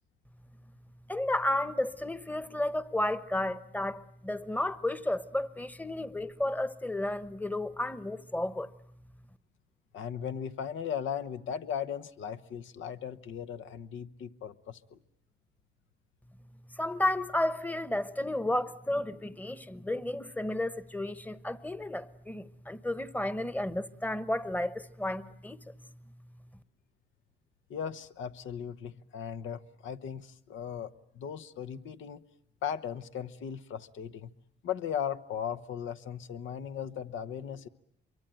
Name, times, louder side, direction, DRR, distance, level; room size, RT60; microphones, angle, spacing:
voice 1, 1.1-8.7 16.8-25.6, left 1 dB, 10° left, 1.1 m, -32 dB
voice 2, 9.9-15.0 27.7-32.2 32.6-34.3 34.6-37.7, left 8 dB, 75° left, 1.1 m, -37 dB
25.5 x 23.5 x 9.1 m
cardioid pair, 90°, 20 cm